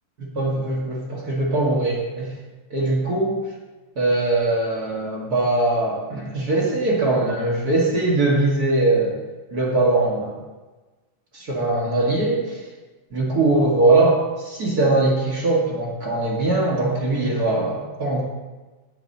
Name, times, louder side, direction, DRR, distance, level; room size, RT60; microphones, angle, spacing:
voice 1, 0.2-2.3 2.7-3.4 3.9-9.2 9.5-10.4 11.3-12.6 13.1-18.2, right 2 dB, 35° right, -3 dB, 1.8 m, -21 dB
16.5 x 9.1 x 3.0 m, 1.2 s
omnidirectional pair, 4.1 m